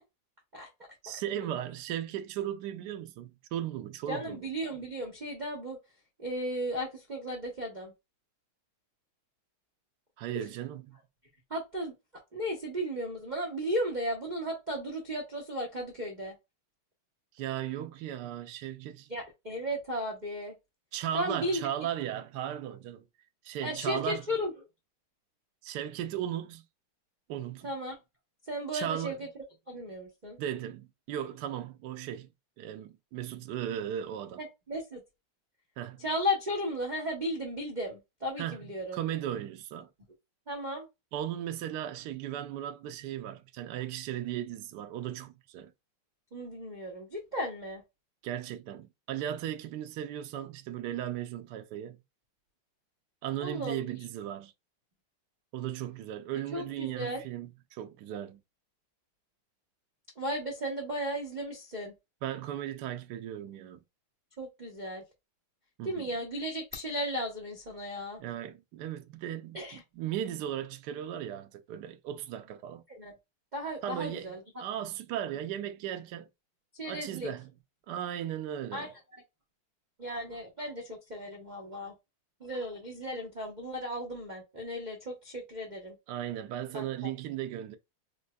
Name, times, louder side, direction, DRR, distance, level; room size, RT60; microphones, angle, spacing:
voice 1, 1.0-4.4 10.2-11.0 17.3-19.1 20.9-23.0 23.4-24.2 25.6-26.6 27.3-27.7 28.7-29.2 30.4-32.3 32.6-34.4 35.8-36.0 38.4-38.6 38.9-39.9 41.1-45.7 48.2-52.0 53.2-54.5 55.5-58.4 62.2-63.8 65.8-66.1 68.2-69.6 70.0-72.8 73.8-76.3 76.8-77.5 77.9-78.9 86.1-87.8, right 11 dB, 75° right, 0.9 m, -36 dB
voice 2, 4.1-5.8 6.2-7.9 10.3-10.4 11.5-11.9 12.3-16.3 19.1-20.5 21.1-21.7 23.6-24.5 27.6-28.0 28.5-29.3 29.7-30.4 34.4-35.0 36.0-39.0 40.5-40.9 46.3-47.8 53.4-53.9 56.5-57.2 60.2-61.9 64.4-65.0 65.8-68.2 69.5-69.8 72.9-73.1 73.5-74.4 76.7-77.3 78.7-78.9 80.0-81.9 82.4-85.9 86.7-87.1, equal, 30° right, 0.8 m, -35 dB
4.5 x 2.6 x 2.2 m
omnidirectional pair, 2.3 m